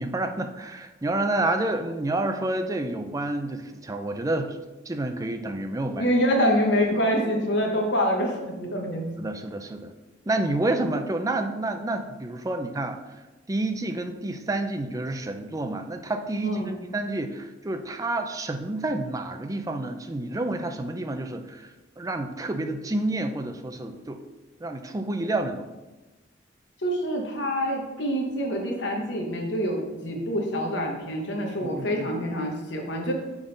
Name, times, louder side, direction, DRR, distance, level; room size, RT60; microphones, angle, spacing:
voice 1, 0.0-4.6 4.9-6.1 9.2-9.9 10.3-13.0 13.5-21.7 22.0-24.2 24.6-25.7 31.6-32.1, right 2 dB, 20° right, 7 dB, 0.4 m, -29 dB
voice 2, 5.9-9.0 16.4-16.7 26.8-33.1, equal, 65° left, 1 dB, 1.0 m, -26 dB
6.0 x 3.8 x 5.0 m, 1.1 s
head